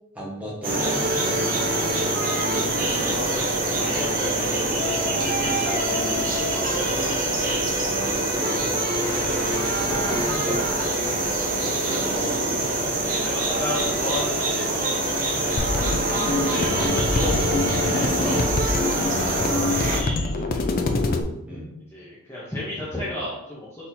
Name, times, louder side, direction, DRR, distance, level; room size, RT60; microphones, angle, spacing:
voice 1, 0.1-1.2 5.3-5.4 10.0-10.6 12.4-12.6 16.3-16.8 18.9-19.4 21.4-21.8, right 1 dB, 5° right, -5 dB, 1.2 m, -35 dB
sound 1, 0.6-20.0, right 1 dB, 40° right, 0.9 m, -24 dB
voice 2, 2.8-9.8 11.3-11.6 11.9-12.4 13.2-15.9 16.4-21.1 21.9-23.9, left 1 dB, 10° left, -8 dB, 0.8 m, -35 dB
sound 2, 15.6-21.2, left 2 dB, 40° left, 0.4 m, -25 dB
4.3 x 4.0 x 2.7 m, 0.84 s
head